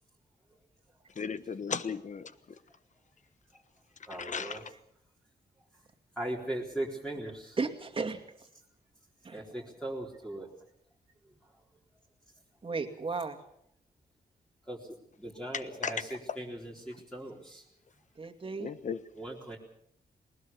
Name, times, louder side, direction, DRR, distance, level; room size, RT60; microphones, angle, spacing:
voice 1, 1.2-2.3 4.2-4.6 15.8-15.9 18.6-19.0, left 6 dB, 50° left, 13 dB, 1.3 m, -35 dB
voice 2, 4.1-4.6 6.2-7.6 9.3-10.5 14.7-17.6 19.1-19.6, right 1 dB, 5° left, -2 dB, 4.0 m, -39 dB
voice 3, 7.6-8.2 9.2-9.4 12.6-13.4 18.2-18.7, right 4 dB, 35° right, 6 dB, 2.4 m, -34 dB
20.5 x 20.0 x 7.1 m, 0.71 s
wide cardioid pair, 120°, 17 cm